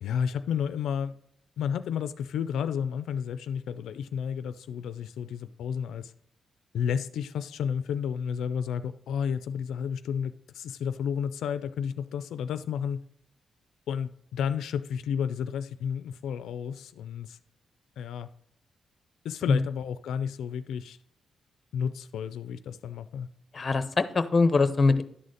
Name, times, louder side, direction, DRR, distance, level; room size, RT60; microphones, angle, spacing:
voice 1, 0.0-1.2 1.6-6.1 6.7-13.0 13.9-17.4 18.0-18.3 19.2-21.0 21.7-23.3, left 7 dB, 90° left, 0.3 m, -31 dB
voice 2, 23.5-25.0, left 3 dB, 30° left, 0.6 m, -23 dB
11.0 x 4.1 x 6.4 m
cardioid pair, 120°, 0 cm